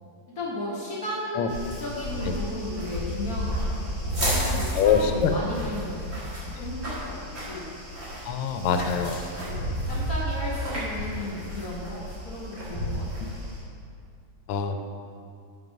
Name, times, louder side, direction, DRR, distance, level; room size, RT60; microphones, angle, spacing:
voice 1, 0.3-6.1 6.6-7.7 8.6-9.0 9.4-13.4, left 1 dB, 45° left, -6 dB, 1.6 m, -35 dB
sound 1, 1.5-13.6, equal, 35° right, 2.2 m, -32 dB
voice 2, 4.8-5.3 8.2-9.1 14.5-14.8, left 7 dB, 85° left, 7 dB, 1.5 m, -24 dB
7.3 x 6.0 x 5.1 m, 2.4 s
omnidirectional pair, 2.4 m